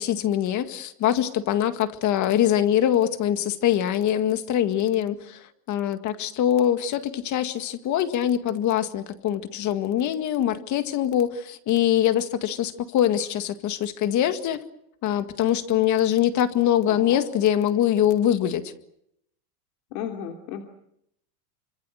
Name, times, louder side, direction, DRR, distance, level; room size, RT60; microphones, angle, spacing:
voice 1, 0.0-5.4 5.7-14.6 15.0-18.7, left 10 dB, 35° left, 9 dB, 2.0 m, -23 dB
voice 2, 16.9-17.2 19.9-20.6, left 9 dB, 65° left, 3 dB, 3.1 m, -34 dB
27.5 x 25.5 x 6.6 m, 0.77 s
supercardioid pair, 145°, 48 cm